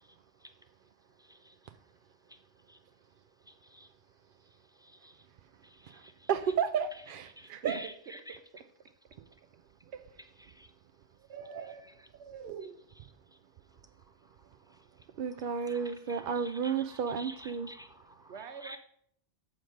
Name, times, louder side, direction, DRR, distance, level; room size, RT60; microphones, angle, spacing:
voice 1, 1.2-1.5 2.7-2.8 3.5-3.9 4.8-5.2 5.6-6.3 7.4-8.4 10.5-10.7 11.8-11.9 14.7-14.8 15.7-15.8 16.1-18.3 18.6-18.8, equal, 5° right, 0.6 m, -50 dB
voice 2, 6.3-7.8 11.3-11.7 12.4-12.7 15.2-17.7, right 7 dB, 60° right, 0.6 m, -33 dB
voice 3, 7.6-7.9 8.3-8.4 9.9-10.3 11.3-11.8 12.2-12.8 18.3-18.8, right 6 dB, 75° right, 1.1 m, -46 dB
7.7 x 5.2 x 6.4 m
omnidirectional pair, 1.1 m